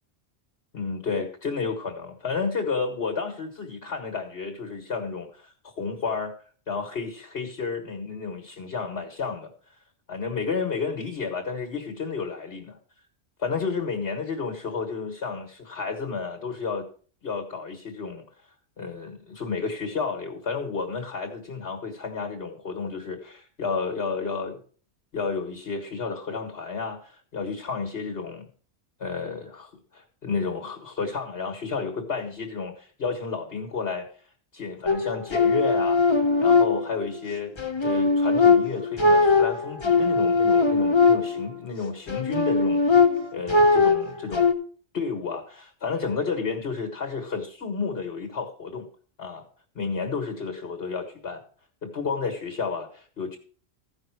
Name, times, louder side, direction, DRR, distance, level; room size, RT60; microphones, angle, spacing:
voice 1, 0.7-6.3 6.7-9.5 10.1-12.8 13.4-16.9 17.2-18.3 18.8-24.6 25.1-28.5 29.0-34.1 34.5-37.5 37.8-42.9 43.3-44.5 44.9-48.9 49.2-49.4 49.8-51.4 51.8-53.4, left 5 dB, 60° left, 1.8 m, -31 dB
sound 1, 34.9-37.2 37.6-41.6 42.1-44.5, left 4 dB, 25° left, 0.9 m, -20 dB
15.0 x 5.7 x 4.7 m
omnidirectional pair, 1.2 m